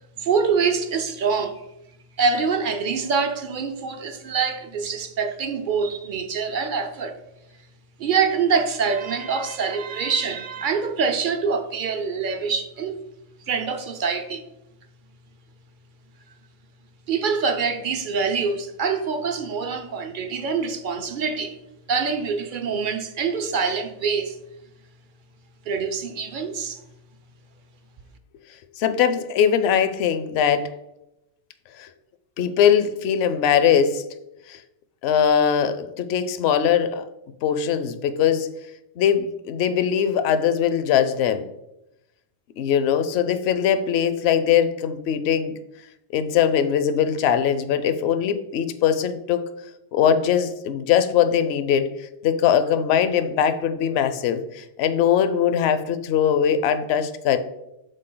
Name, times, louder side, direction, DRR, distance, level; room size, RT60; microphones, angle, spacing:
voice 1, 0.2-1.6 2.2-7.2 8.0-13.0 13.5-14.4 17.1-21.6 21.9-24.4 25.7-26.8, right 5 dB, 55° right, 0.6 m, -25 dB
voice 2, 28.8-30.7 31.8-31.9 32.4-34.0 34.5-34.6 35.0-37.0 37.4-38.5 39.0-41.5 42.6-45.6 46.1-49.5 49.9-51.9 52.2-57.4, left 8 dB, 65° left, 0.7 m, -21 dB
6.6 x 4.0 x 3.8 m
omnidirectional pair, 1.3 m